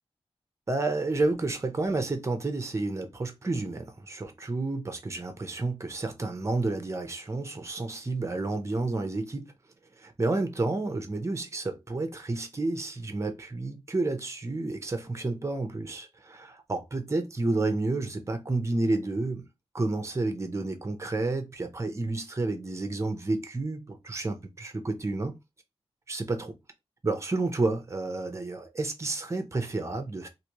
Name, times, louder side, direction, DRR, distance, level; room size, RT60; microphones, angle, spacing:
voice 1, 0.7-9.5 10.0-19.5 19.7-25.4 26.1-26.5 27.0-30.3, right 2 dB, 25° right, 0.8 m, -30 dB
3.2 x 2.6 x 2.9 m
wide cardioid pair, 105°, 11 cm